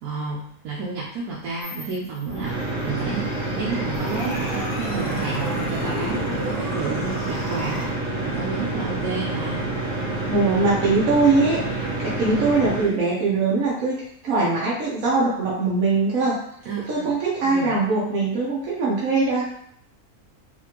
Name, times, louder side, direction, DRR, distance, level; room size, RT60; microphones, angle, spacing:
voice 1, 0.0-3.3 3.5-7.9 8.2-9.6 16.7-17.1 17.4-17.8, right 4 dB, 90° right, -4 dB, 1.2 m, -31 dB
sound 1, 1.6-2.4 2.9-7.9, left 2 dB, 45° left, 0.8 m, -35 dB
sound 2, 2.2-12.9, right 2 dB, 40° right, 1.9 m, -28 dB
voice 2, 10.3-13.9 14.2-16.4 16.9-19.4, right 3 dB, 70° right, -6 dB, 1.3 m, -21 dB
4.1 x 2.5 x 2.9 m, 0.68 s
omnidirectional pair, 1.6 m